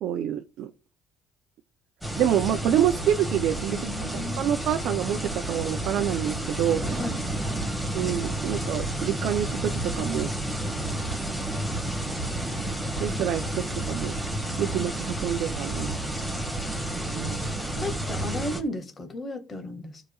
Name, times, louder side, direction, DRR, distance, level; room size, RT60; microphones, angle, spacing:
voice 1, 0.0-0.7 2.2-3.8 4.4-7.0 7.9-10.3 13.0-14.1 14.6-16.3 17.1-17.5, right 10 dB, 70° right, 0.6 m, -27 dB
sound 1, 2.0-18.6, right 1 dB, ahead, 1.8 m, -30 dB
voice 2, 3.7-4.4 7.0-7.2 17.8-20.0, left 1 dB, 30° left, 1.9 m, -34 dB
14.5 x 5.0 x 2.4 m
cardioid pair, 115°, 0 cm